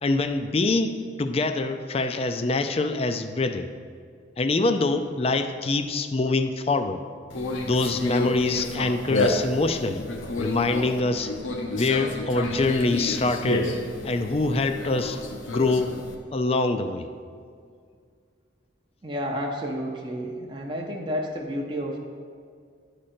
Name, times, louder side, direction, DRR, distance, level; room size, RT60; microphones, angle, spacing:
voice 1, 0.0-3.7 4.4-7.0 7.6-10.1 10.4-11.3 11.7-13.7 14.0-15.2 15.5-15.9 16.3-17.1, left 2 dB, 30° left, 8 dB, 0.4 m, -24 dB
Conversation, 7.3-16.1, left 2 dB, 85° left, 0.9 m, -30 dB
voice 2, 19.0-22.0, equal, 25° right, -1 dB, 0.6 m, -31 dB
11.0 x 5.0 x 4.3 m, 2.2 s
head